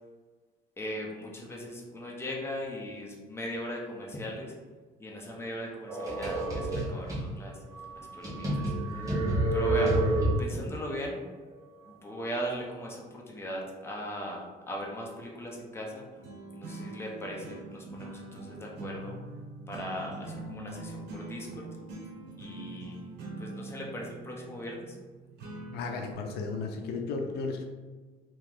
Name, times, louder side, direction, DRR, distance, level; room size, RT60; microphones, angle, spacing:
voice 1, 0.8-4.6 5.0-7.6 7.9-9.0 9.5-10.0 10.4-11.2 11.8-16.1 16.5-19.2 19.7-21.8 22.4-25.0, equal, 15° left, -2 dB, 0.8 m, -39 dB
sound 1, 5.9-7.3 7.8-7.9 8.2-10.7, right 1 dB, 20° right, 1.3 m, -28 dB
sound 2, 16.2-26.1, right 2 dB, 80° right, 0.9 m, -43 dB
voice 2, 25.7-27.6, left 4 dB, 75° left, 3 dB, 0.5 m, -34 dB
3.0 x 2.9 x 3.7 m, 1.4 s
cardioid pair, 110°, 17 cm